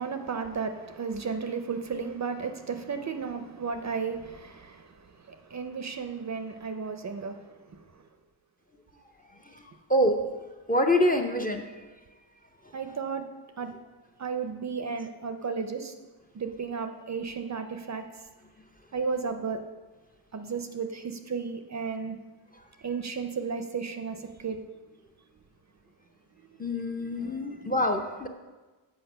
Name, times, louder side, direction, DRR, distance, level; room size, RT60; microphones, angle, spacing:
voice 1, 0.0-8.0 12.7-13.3 13.6-13.7 14.2-15.9 16.3-18.3 18.9-19.6 20.3-22.2 22.8-24.6 26.3-26.7 27.2-27.8, right 5 dB, 35° right, 7 dB, 0.5 m, -34 dB
voice 2, 10.7-11.6 26.6-28.3, left 1 dB, 20° left, 4 dB, 0.5 m, -25 dB
8.0 x 4.9 x 6.6 m, 1.2 s
wide cardioid pair, 155°, 49 cm